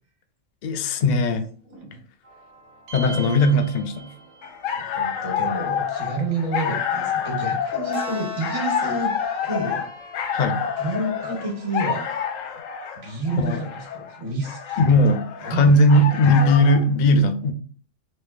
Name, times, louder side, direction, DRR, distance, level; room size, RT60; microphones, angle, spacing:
voice 1, 0.6-1.4 2.9-4.1 10.3-10.6 13.4-13.6 14.8-15.2 15.5-17.5, left 1 dB, 60° left, 0.4 m, -18 dB
voice 2, 1.6-2.0 4.7-9.1 9.4-9.8 10.8-12.1 12.9-14.8 15.4-16.2, right 2 dB, 70° right, 1.4 m, -29 dB
sound 1, 2.2-12.6, left 2 dB, 25° right, 0.3 m, -42 dB
sound 2, 2.9-4.7, right 5 dB, 90° right, 1.1 m, -37 dB
sound 3, 4.4-16.9, left 8 dB, 90° left, 1.0 m, -28 dB
4.3 x 2.5 x 2.4 m
omnidirectional pair, 1.3 m